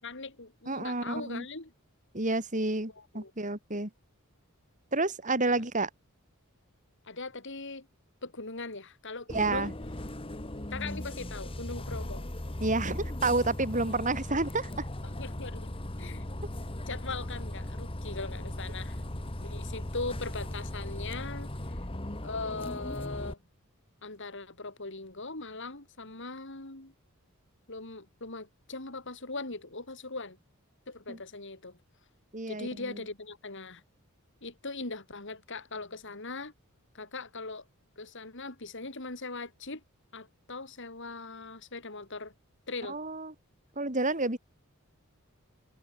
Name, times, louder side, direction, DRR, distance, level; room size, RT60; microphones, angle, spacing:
voice 1, 0.0-1.7 3.0-3.3 7.1-7.9 8.2-9.7 10.7-12.3 15.0-16.3 16.9-19.0 19.4-21.8 22.2-23.4 24.0-26.9 27.7-30.4 30.9-31.8 32.5-33.8 34.4-36.5 36.9-37.7 38.0-39.8 40.1-42.3 42.7-43.0, left 3 dB, 55° left, 3.5 m, -40 dB
voice 2, 0.7-1.4 2.1-3.9 4.9-5.9 9.3-9.7 12.6-14.7 31.1-31.2 32.3-33.0 42.9-43.3 43.8-44.4, right 2 dB, 35° right, 4.4 m, -30 dB
Bus, 9.3-23.3, left 1 dB, 25° left, 1.6 m, -38 dB
head